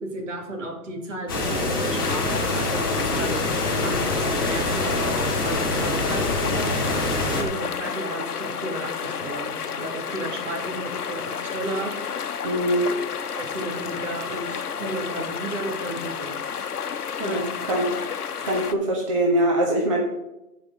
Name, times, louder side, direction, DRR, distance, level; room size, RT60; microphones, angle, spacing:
voice 1, 0.0-6.8 7.4-12.2 13.4-16.4 17.2-17.4, right 1 dB, 55° right, 2 dB, 2.5 m, -33 dB
sound 1, 1.3-7.4, left 2 dB, 15° left, 0.7 m, -25 dB
sound 2, 2.0-18.7, left 7 dB, 75° left, 0.9 m, -31 dB
voice 2, 12.4-12.9 17.2-17.4 17.7-18.0 18.4-20.0, right 1 dB, 20° right, -1 dB, 0.7 m, -22 dB
13.0 x 5.0 x 5.0 m, 0.94 s
hypercardioid pair, 155°, 45 cm